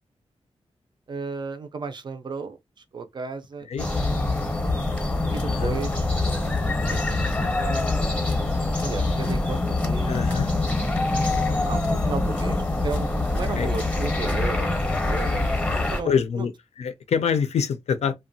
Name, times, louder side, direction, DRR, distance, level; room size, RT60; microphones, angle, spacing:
voice 1, 1.1-2.6 2.9-4.6 5.3-7.9 8.8-10.3 11.6-15.5 15.7-16.5, right 4 dB, 45° right, 0.4 m, -35 dB
sound 1, 3.8-16.0, left 2 dB, 15° left, 0.7 m, -24 dB
voice 2, 5.4-5.8 10.1-10.5 13.6-13.7 16.0-16.5 16.8-18.2, left 6 dB, 75° left, 0.4 m, -25 dB
2.8 x 2.2 x 2.6 m
wide cardioid pair, 145°, 11 cm